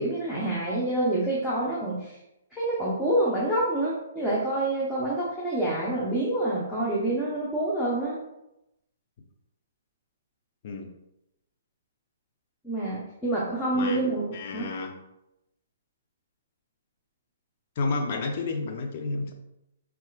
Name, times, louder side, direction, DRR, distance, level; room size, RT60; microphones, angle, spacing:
voice 1, 0.0-2.1 2.6-8.2 12.6-14.2 14.5-14.7, right 1 dB, 5° left, -7 dB, 0.7 m, -27 dB
voice 2, 14.3-15.0 17.8-19.3, left 3 dB, 50° left, 4 dB, 0.5 m, -30 dB
4.2 x 2.4 x 2.4 m, 0.88 s
hypercardioid pair, 130°, 0 cm